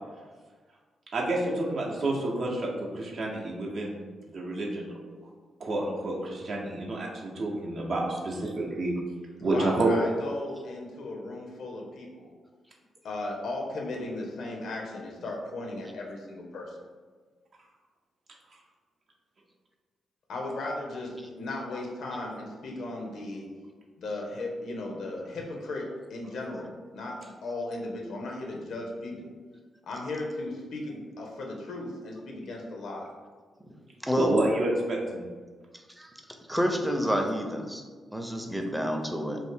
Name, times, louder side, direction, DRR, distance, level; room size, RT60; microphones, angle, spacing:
voice 1, 1.1-4.0 4.3-4.9 5.6-8.9 9.4-9.9 34.2-35.3 38.5-38.6, right 2 dB, 60° right, -2 dB, 0.6 m, -29 dB
voice 2, 9.5-12.3 13.0-16.8 20.3-23.4 24.0-29.3 29.8-33.1, left 2 dB, 70° left, 0 dB, 0.5 m, -36 dB
voice 3, 34.0-34.3 36.0-36.1 36.5-37.8 38.1-39.4, equal, 5° right, 3 dB, 0.5 m, -28 dB
2.5 x 2.0 x 3.4 m, 1.4 s
hypercardioid pair, 40°, 0 cm